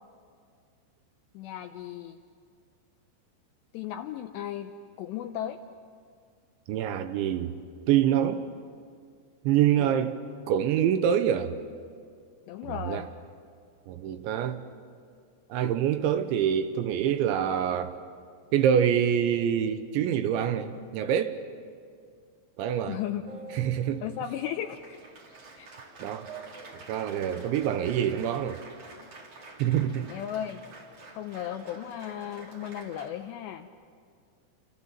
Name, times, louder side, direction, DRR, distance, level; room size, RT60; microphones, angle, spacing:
voice 1, 1.3-2.2 3.7-4.7 5.0-5.6 9.8-9.9 12.5-13.1 22.9-23.2 24.0-25.0 25.6-25.7 26.3-26.4 30.1-30.6 31.1-33.7, left 11 dB, 80° left, 7 dB, 2.5 m, -35 dB
voice 2, 6.7-7.5 7.9-8.4 9.4-10.2 10.5-11.6 12.6-13.1 13.9-14.6 15.5-18.0 18.5-21.4 22.6-23.0 23.5-24.0 26.0-26.3 26.7-28.6 29.6-30.1, right 9 dB, 75° right, 9 dB, 3.0 m, -26 dB
Applause, 23.2-33.1, right 4 dB, 40° right, 3.9 m, -47 dB
28.5 x 26.5 x 7.4 m, 2.2 s
omnidirectional pair, 5.8 m